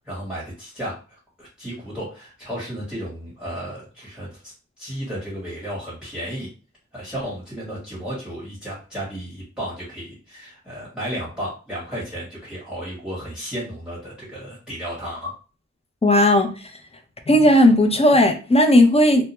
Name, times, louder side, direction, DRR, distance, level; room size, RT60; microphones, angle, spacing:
voice 1, 0.0-6.5 6.9-15.3, equal, 5° right, -7 dB, 1.1 m, -33 dB
voice 2, 16.0-16.5 17.3-19.2, left 1 dB, 20° left, 4 dB, 0.5 m, -15 dB
2.2 x 2.1 x 2.9 m, 0.35 s
wide cardioid pair, 65°, 29 cm